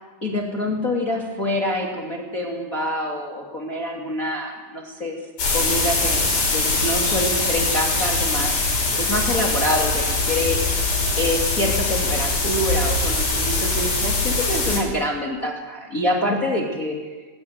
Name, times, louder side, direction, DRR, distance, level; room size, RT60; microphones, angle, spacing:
voice 1, 0.2-5.2 5.5-10.6 11.2-17.0, left 1 dB, 25° left, 0 dB, 2.3 m, -26 dB
sound 1, 5.4-14.8, left 3 dB, 60° left, 7.3 m, -22 dB
19.5 x 18.0 x 9.5 m, 1.3 s
omnidirectional pair, 4.8 m